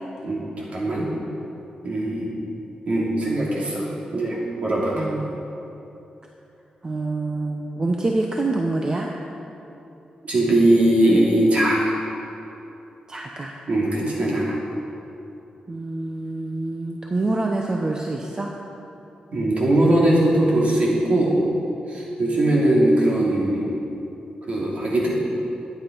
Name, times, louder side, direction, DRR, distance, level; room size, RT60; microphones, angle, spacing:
voice 1, 0.2-1.1 1.8-2.3 2.9-3.8 4.1-5.0 10.2-11.9 13.7-14.6 19.3-21.5 21.9-23.7 24.5-25.1, right 1 dB, 55° right, -4 dB, 3.0 m, -20 dB
voice 2, 4.9-5.5 6.8-9.1 13.1-13.6 15.7-18.5, right 2 dB, 30° right, 1 dB, 0.8 m, -26 dB
11.5 x 9.1 x 5.4 m, 3.0 s
cardioid pair, 105°, 3 cm